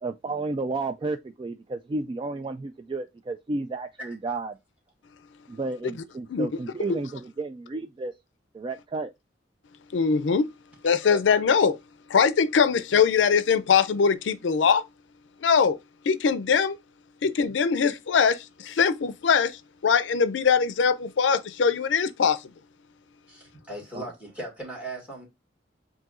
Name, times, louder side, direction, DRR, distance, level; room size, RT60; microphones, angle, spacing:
voice 1, 0.0-4.6 5.5-8.1 8.5-9.1 23.9-24.1, right 3 dB, 30° right, 0.3 m, -32 dB
voice 2, 9.9-10.5 10.8-11.8 12.1-14.8 15.4-15.8 16.1-16.8 17.2-18.4 18.6-19.6 19.8-22.4, left 6 dB, 80° left, 0.4 m, -22 dB
voice 3, 23.3-25.3, right 1 dB, 10° right, 2.2 m, -38 dB
7.5 x 2.7 x 2.4 m
head